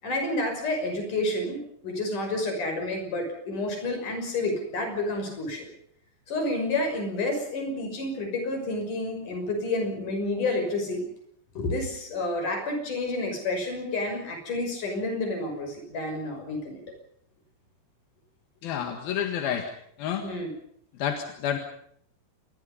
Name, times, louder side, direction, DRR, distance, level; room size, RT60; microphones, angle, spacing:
voice 1, 0.0-5.7 6.3-11.0 11.6-16.9 20.2-20.5, left 2 dB, 60° left, 5 dB, 7.5 m, -30 dB
voice 2, 18.6-19.7 20.0-20.3 21.0-21.6, left 9 dB, 85° left, 5 dB, 3.7 m, -29 dB
27.0 x 22.5 x 5.5 m, 0.68 s
omnidirectional pair, 4.1 m